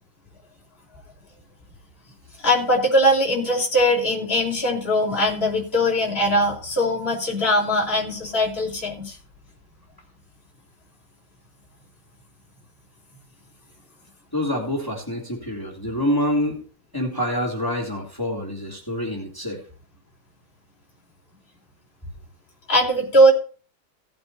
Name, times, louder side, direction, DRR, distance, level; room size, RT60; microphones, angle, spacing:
voice 1, 2.4-9.2 22.7-23.3, equal, 30° left, -3 dB, 4.4 m, -20 dB
voice 2, 14.3-16.6 16.9-19.6, left 1 dB, 10° left, 0 dB, 3.1 m, -26 dB
18.5 x 8.7 x 2.8 m, 0.37 s
omnidirectional pair, 2.0 m